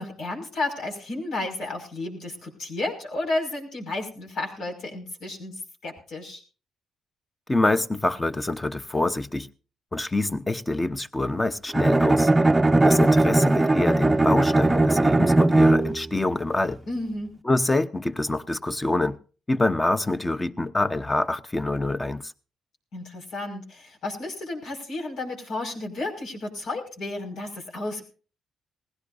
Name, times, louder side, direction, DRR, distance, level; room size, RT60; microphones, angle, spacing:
voice 1, 0.0-6.4 16.9-17.4 22.9-28.0, left 2 dB, 75° left, 5.7 m, -32 dB
voice 2, 7.5-9.5 9.9-12.3 12.8-16.8 17.5-19.2 19.5-22.3, left 2 dB, 20° left, 0.9 m, -26 dB
Bowed string instrument, 11.7-16.1, right 2 dB, 15° right, 0.6 m, -19 dB
20.0 x 16.5 x 2.6 m
cardioid pair, 85°, 0 cm